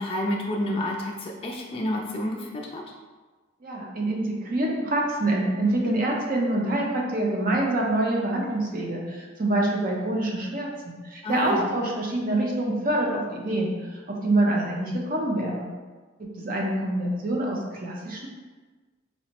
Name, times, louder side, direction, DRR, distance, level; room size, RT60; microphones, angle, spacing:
voice 1, 0.0-2.8 11.2-11.7, left 1 dB, 30° left, -2 dB, 0.4 m, -29 dB
voice 2, 3.6-15.7 16.2-18.3, right 1 dB, 45° right, -2 dB, 0.6 m, -26 dB
4.3 x 2.0 x 2.8 m, 1.3 s
head